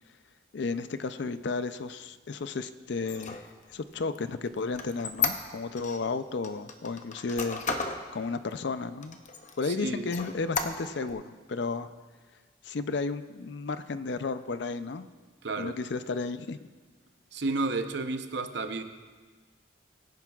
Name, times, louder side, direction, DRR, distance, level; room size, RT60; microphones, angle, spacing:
voice 1, 0.5-7.6 8.1-9.2 9.6-11.9 12.6-15.1 15.6-16.6, left 4 dB, 60° left, 12 dB, 0.5 m, -33 dB
Squeak, 3.0-6.0 6.4-8.0 8.5-8.6 9.0-9.7 10.1-11.1, left 5 dB, 40° left, 0.8 m, -33 dB
voice 2, 9.6-10.1 15.4-15.8 17.3-18.8, right 3 dB, 60° right, 7 dB, 0.8 m, -31 dB
23.0 x 10.5 x 2.4 m, 1.4 s
head